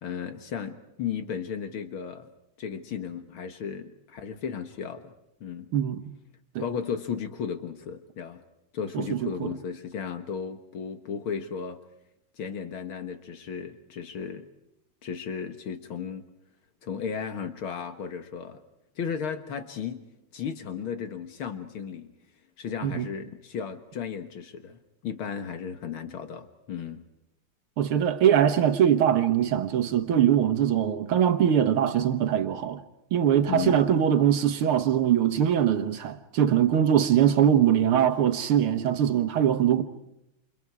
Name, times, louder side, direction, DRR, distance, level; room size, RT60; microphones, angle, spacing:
voice 1, 0.0-2.3 2.6-5.1 5.4-5.7 6.6-8.4 8.7-11.8 12.4-14.5 15.0-16.3 16.8-18.6 19.0-20.1 20.3-22.1 22.6-27.0 33.5-33.8, left 7 dB, 75° left, 2.3 m, -35 dB
voice 2, 8.9-9.5 22.8-23.1 27.8-32.8 33.1-39.8, right 9 dB, 85° right, 2.1 m, -22 dB
29.0 x 29.0 x 4.8 m
omnidirectional pair, 2.3 m